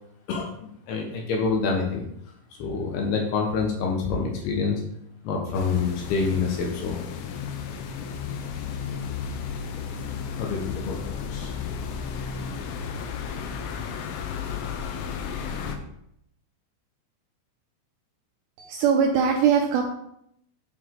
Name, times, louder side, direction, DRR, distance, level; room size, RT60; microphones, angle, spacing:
voice 1, 0.3-2.0 2.5-4.8 5.2-7.3 10.4-11.0 11.3-11.5, left 5 dB, 70° left, 0 dB, 2.7 m, -27 dB
sound 1, 5.5-15.8, left 6 dB, 90° left, 3.3 m, -33 dB
voice 2, 18.6-19.8, right 7 dB, 85° right, 1 dB, 2.5 m, -21 dB
8.1 x 5.0 x 3.8 m, 0.75 s
omnidirectional pair, 5.5 m